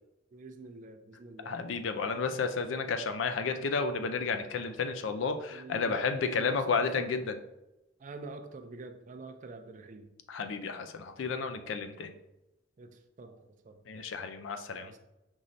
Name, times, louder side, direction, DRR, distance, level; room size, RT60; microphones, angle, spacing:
voice 1, 0.3-1.5 5.5-7.1 8.0-10.1 11.6-11.9 12.8-12.9 13.2-13.4 13.7-13.8 14.7-15.0, right 3 dB, 40° right, 7 dB, 0.4 m, -46 dB
voice 2, 1.5-7.4 10.3-12.1 13.9-14.9, left 5 dB, 70° left, 8 dB, 0.4 m, -32 dB
5.4 x 3.1 x 2.6 m, 0.95 s
head